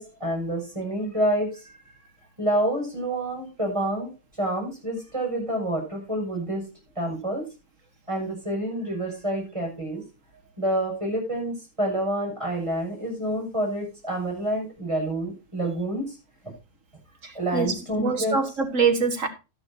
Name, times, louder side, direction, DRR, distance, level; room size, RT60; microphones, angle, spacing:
voice 1, 0.0-1.9 2.4-4.1 4.4-6.7 7.0-7.5 8.1-10.0 10.6-16.2 17.3-18.5, right 1 dB, 20° right, -1 dB, 6.4 m, -28 dB
voice 2, 17.2-19.3, right 5 dB, 55° right, 6 dB, 2.1 m, -25 dB
12.5 x 11.5 x 2.8 m, 0.29 s
omnidirectional pair, 1.6 m